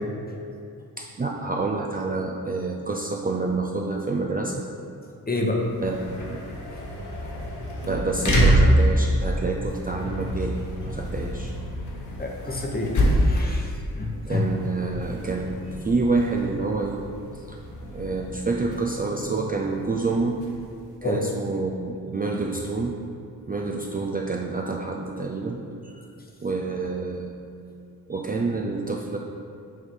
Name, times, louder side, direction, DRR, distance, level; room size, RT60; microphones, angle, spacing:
voice 1, 1.0-4.6 5.8-6.0 6.3-6.4 7.9-10.6 10.8-11.5 14.3-17.0 17.5-17.6 17.9-20.4 21.0-23.0 23.5-25.9 26.4-27.3 28.1-29.2, right 3 dB, 25° right, 0 dB, 0.5 m, -28 dB
voice 2, 5.3-5.6 12.2-12.9 13.2-13.6 13.9-14.4 21.0-21.2, left 2 dB, 25° left, 0 dB, 1.0 m, -28 dB
sound 1, 5.6-20.9, equal, 50° left, 1.2 m, -27 dB
6.5 x 3.0 x 5.4 m, 2.4 s
cardioid pair, 65°, 38 cm